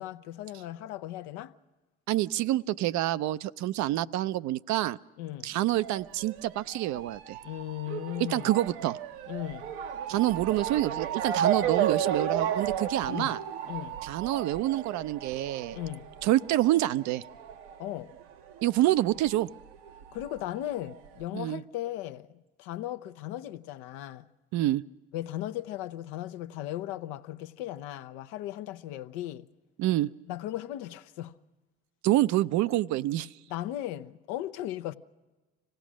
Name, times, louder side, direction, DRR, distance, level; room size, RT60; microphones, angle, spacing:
voice 1, 0.0-1.5 5.2-5.5 7.4-8.5 9.3-9.7 13.0-13.4 13.7-14.0 15.7-16.1 17.8-18.1 20.1-22.3 22.6-24.3 25.1-29.5 30.3-31.4 33.5-34.9, left 13 dB, 70° left, 0.8 m, -37 dB
voice 2, 2.1-5.0 5.4-7.4 8.3-9.0 10.1-13.4 14.0-15.8 16.2-17.2 18.6-19.5 21.3-21.6 24.5-24.8 29.8-30.1 32.0-33.3, right 15 dB, 55° right, 0.6 m, -27 dB
Motor vehicle (road) / Siren, 5.8-18.8 19.0-20.2 20.9-21.0 21.2-21.3, right 9 dB, 75° right, 1.0 m, -33 dB
25.5 x 17.0 x 6.2 m
hypercardioid pair, 65°, 33 cm